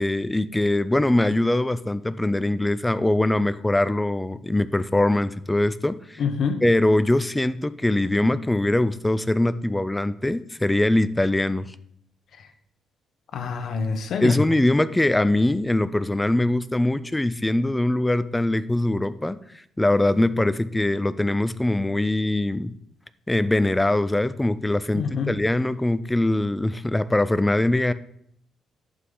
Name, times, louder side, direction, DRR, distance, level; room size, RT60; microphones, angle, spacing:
voice 1, 0.0-6.2 6.6-11.7 14.2-22.7 23.3-27.9, left 1 dB, 10° left, 14 dB, 0.4 m, -22 dB
voice 2, 6.2-6.6 12.4-12.5 13.3-14.4 24.9-25.3, left 5 dB, 55° left, 8 dB, 1.1 m, -26 dB
11.0 x 7.9 x 3.9 m, 0.70 s
cardioid pair, 150°, 0 cm